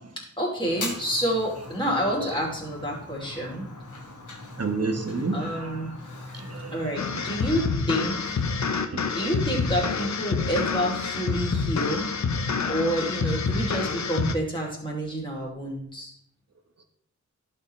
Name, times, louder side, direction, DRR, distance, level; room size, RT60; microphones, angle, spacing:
voice 1, 0.2-3.7 5.3-5.9 6.7-8.4 9.1-12.1 12.7-16.1, equal, 15° left, -4 dB, 3.0 m, -29 dB
Fire, 0.6-7.6, left 2 dB, 85° left, 1.6 m, -40 dB
voice 2, 4.6-5.9 6.3-7.3 8.7-9.2, right 3 dB, 55° right, 4 dB, 1.3 m, -32 dB
sound 1, 7.0-14.3, left 5 dB, 65° left, 0.7 m, -27 dB
11.5 x 5.6 x 3.3 m, 0.68 s
wide cardioid pair, 50°, 30 cm